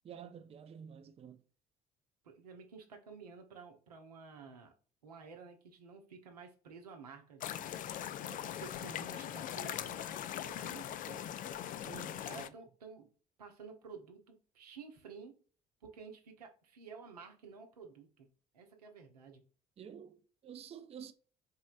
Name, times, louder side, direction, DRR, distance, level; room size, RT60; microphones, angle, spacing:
voice 1, 0.0-1.4 11.8-12.5 19.8-21.1, right 8 dB, 30° right, 0.5 m, -50 dB
voice 2, 2.2-4.7 5.0-7.7 8.2-11.6 12.1-13.1 13.4-15.4 15.8-19.5, right 5 dB, 85° right, 0.8 m, -52 dB
sound 1, 7.4-12.5, left 11 dB, 45° left, 0.4 m, -41 dB
4.5 x 3.1 x 2.5 m
hypercardioid pair, 55°, 20 cm